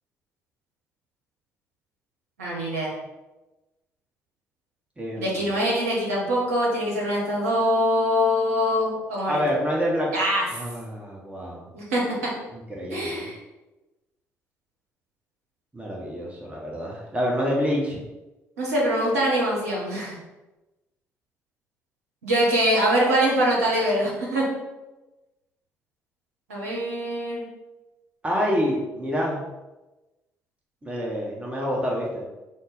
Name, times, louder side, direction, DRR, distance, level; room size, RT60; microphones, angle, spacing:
voice 1, 2.4-2.9 5.2-9.4 10.1-10.4 11.7-12.3 12.9-13.4 18.6-20.2 22.2-24.5 26.5-27.4, equal, 75° right, -4 dB, 0.9 m, -23 dB
voice 2, 5.0-5.4 9.3-10.1 10.5-11.7 12.5-13.3 15.7-18.0 28.2-29.4 30.8-32.2, equal, 15° right, -3 dB, 0.8 m, -27 dB
3.8 x 2.0 x 3.9 m, 1.1 s
figure-of-eight pair, 45°, 8 cm